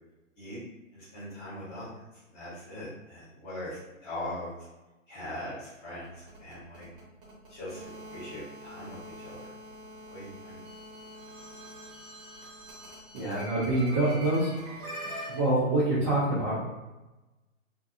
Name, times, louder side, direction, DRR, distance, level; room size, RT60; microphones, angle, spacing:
voice 1, 0.9-4.6 5.1-6.9 7.5-9.5 10.1-10.6, left 1 dB, 15° left, -9 dB, 1.0 m, -41 dB
sound 1, 5.8-15.4, equal, 40° right, 0.9 m, -44 dB
voice 2, 13.1-14.9 15.2-16.6, right 2 dB, 20° right, -10 dB, 0.5 m, -26 dB
2.6 x 2.4 x 2.4 m, 1.1 s
figure-of-eight pair, 135°, 40 cm